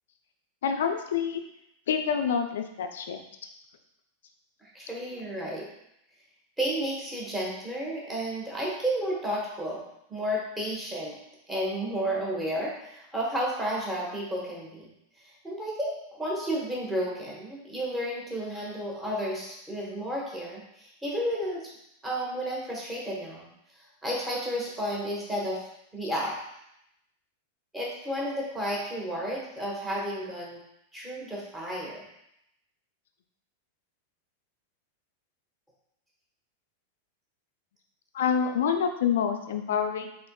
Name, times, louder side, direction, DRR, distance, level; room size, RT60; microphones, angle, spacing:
voice 1, 0.6-1.4 1.9-3.2 38.1-40.1, left 7 dB, 60° left, 6 dB, 0.4 m, -27 dB
voice 2, 4.6-5.7 6.6-9.8 10.1-11.1 11.5-14.9 15.4-21.6 22.0-23.5 24.0-25.7 25.9-26.3 27.7-30.6 30.9-32.0, equal, 10° right, -4 dB, 1.3 m, -32 dB
4.1 x 3.6 x 2.3 m, 0.80 s
figure-of-eight pair, 90°, 0 cm